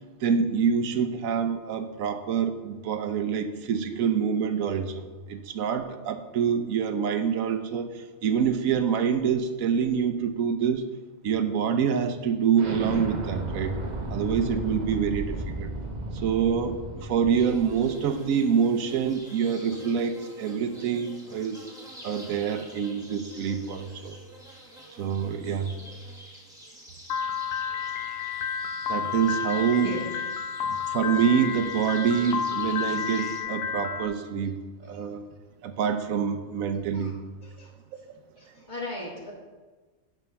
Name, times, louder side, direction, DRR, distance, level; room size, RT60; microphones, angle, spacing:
voice 1, 0.2-10.8 11.2-13.8 14.1-15.7 16.1-21.6 22.0-24.2 25.0-25.7 28.9-30.0 30.6-34.6 34.8-35.3 35.6-37.2, right 7 dB, 80° right, 8 dB, 1.1 m, -26 dB
Explosion, 12.6-18.1, right 2 dB, 40° right, 0.8 m, -34 dB
sound 1, 17.3-33.4, equal, 5° right, 1.3 m, -48 dB
Piano, 27.1-34.1, left 7 dB, 65° left, 0.6 m, -31 dB
voice 2, 37.4-38.1 38.3-39.3, left 1 dB, 35° left, -4 dB, 2.1 m, -39 dB
10.5 x 3.7 x 5.7 m, 1.3 s
omnidirectional pair, 1.4 m